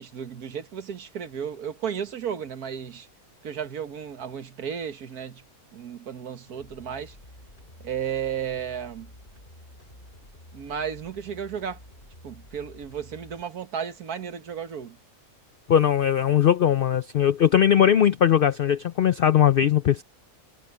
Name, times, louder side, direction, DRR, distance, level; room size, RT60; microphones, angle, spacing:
voice 1, 0.0-3.1 3.4-5.4 5.7-7.2 7.8-9.1 10.5-11.8 12.2-15.0, right 8 dB, 85° right, 1.9 m, -33 dB
sound 1, 6.5-13.4, left 1 dB, 35° left, 5.5 m, -50 dB
voice 2, 15.7-20.0, left 9 dB, 75° left, 0.5 m, -20 dB
omnidirectional pair, 1.6 m